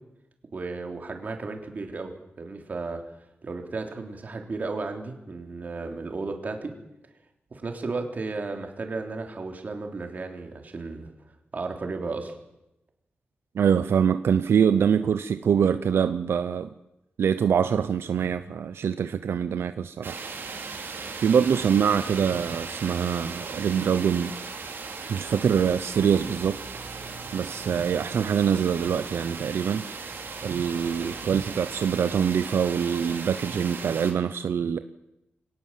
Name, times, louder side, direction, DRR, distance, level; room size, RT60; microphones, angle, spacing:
voice 1, 0.5-3.0 3.4-6.7 7.5-11.1 11.5-12.4, right 3 dB, 45° right, 3.4 m, -34 dB
voice 2, 13.5-16.7 17.2-20.6 21.2-24.3 25.1-26.6 27.3-29.8 30.4-34.8, right 7 dB, 90° right, 0.8 m, -24 dB
sound 1, 20.0-34.1, right 4 dB, 65° right, 3.9 m, -37 dB
24.0 x 18.5 x 7.6 m
wide cardioid pair, 135°, 4 cm